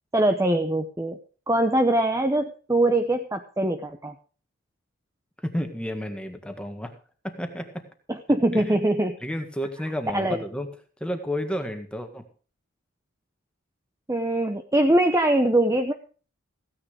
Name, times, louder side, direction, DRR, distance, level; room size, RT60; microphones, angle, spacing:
voice 1, 0.1-1.2 1.5-4.1 8.1-9.2 10.1-10.4 14.1-15.9, right 1 dB, 15° right, 5 dB, 0.8 m, -22 dB
voice 2, 5.4-7.0 7.2-7.9 8.5-8.6 9.2-10.7 11.0-12.3, equal, 5° left, 6 dB, 1.7 m, -31 dB
16.0 x 9.6 x 5.0 m, 0.38 s
head